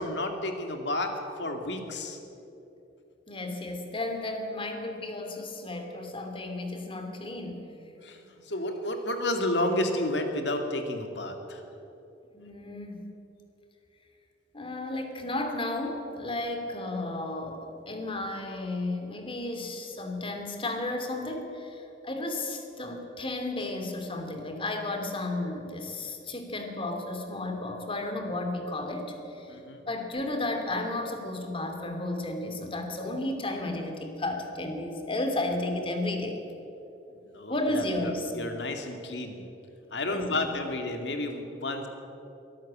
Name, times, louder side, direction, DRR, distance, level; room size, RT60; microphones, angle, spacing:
voice 1, 0.0-2.2 8.0-11.6 29.5-29.8 37.2-39.5 39.9-41.9, left 1 dB, 70° left, 5 dB, 2.5 m, -31 dB
voice 2, 3.3-7.6 12.3-13.1 14.5-29.6 29.9-36.4 37.5-38.3 40.1-40.5, left 2 dB, 30° left, 5 dB, 2.7 m, -33 dB
23.5 x 13.5 x 8.7 m, 3.0 s
head